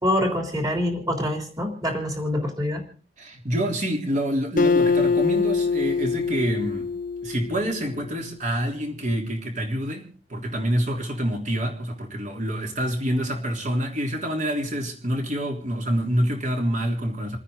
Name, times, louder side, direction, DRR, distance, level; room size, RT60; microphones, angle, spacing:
voice 1, 0.0-2.8, left 1 dB, 20° right, 3.4 m, -25 dB
voice 2, 3.2-6.9 7.2-17.4, equal, 40° right, 3.4 m, -27 dB
Acoustic guitar, 4.6-8.1, left 4 dB, 45° left, 0.7 m, -24 dB
29.5 x 9.8 x 3.9 m
head